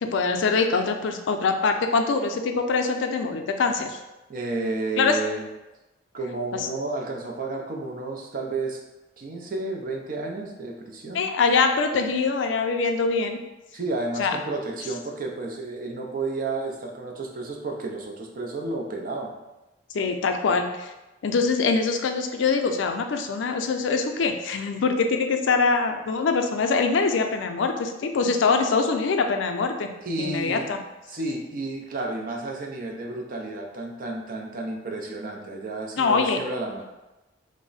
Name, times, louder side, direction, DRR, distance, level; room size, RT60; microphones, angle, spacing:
voice 1, 0.0-4.0 5.0-5.1 6.5-6.7 11.1-13.4 14.2-14.4 19.9-20.9 21.2-29.9 30.2-30.8 36.0-36.4, left 4 dB, 85° left, 5 dB, 0.4 m, -23 dB
voice 2, 4.3-5.5 6.1-8.8 9.2-11.3 13.7-19.3 30.0-30.8 31.1-36.9, right 2 dB, 50° right, 1 dB, 0.5 m, -31 dB
3.3 x 2.0 x 3.8 m, 1.0 s
head